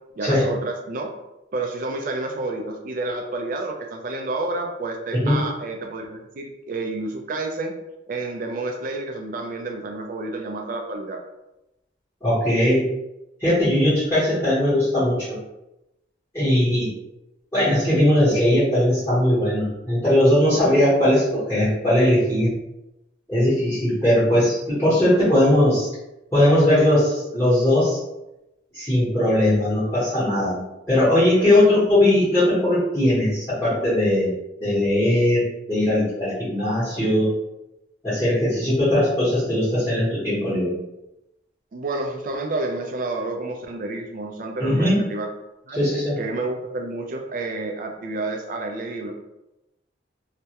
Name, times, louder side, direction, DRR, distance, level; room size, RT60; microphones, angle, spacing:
voice 1, 0.1-1.1 1.5-7.7 8.1-11.2 31.4-32.1 41.7-45.3 45.7-45.8 46.2-49.1, right 2 dB, 45° right, 3 dB, 0.3 m, -30 dB
voice 2, 12.2-12.8 13.4-15.4 16.3-16.9 17.5-22.5 23.3-25.9 26.3-28.0 28.7-30.6 30.9-34.3 34.6-35.4 35.7-37.3 38.0-40.8 44.6-45.1 45.7-46.2, left 1 dB, 15° left, -13 dB, 0.9 m, -19 dB
2.3 x 2.1 x 2.8 m, 0.93 s
head